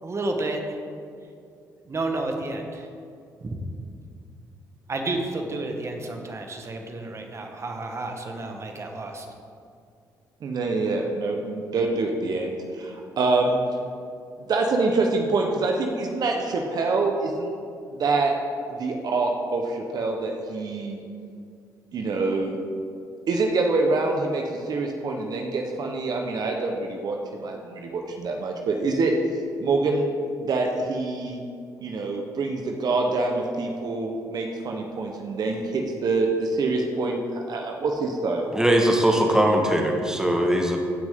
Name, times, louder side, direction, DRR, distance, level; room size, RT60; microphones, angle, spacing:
voice 1, 0.0-0.8 1.9-2.9 3.4-3.6 4.9-9.3, right 2 dB, 35° right, 3 dB, 1.4 m, -31 dB
voice 2, 10.4-13.6 14.4-17.5 18.0-18.3 18.7-21.0 21.9-22.6 23.3-29.1 29.6-30.1 30.3-31.4 31.8-38.5, right 3 dB, 60° right, 2 dB, 1.0 m, -25 dB
voice 3, 38.5-40.8, right 1 dB, 10° right, 1 dB, 1.5 m, -20 dB
15.5 x 6.1 x 3.8 m, 2.3 s
supercardioid pair, 70°, 8 cm